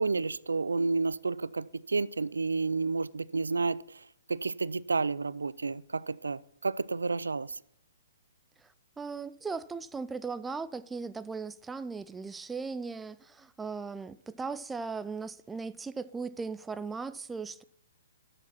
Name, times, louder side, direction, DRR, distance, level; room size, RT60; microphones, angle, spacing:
voice 1, 0.0-4.0 4.3-7.6, right 4 dB, 85° right, 0.4 m, -30 dB
voice 2, 9.0-17.6, right 4 dB, 10° right, 0.4 m, -38 dB
12.0 x 5.0 x 5.7 m
hypercardioid pair, 135°, 0 cm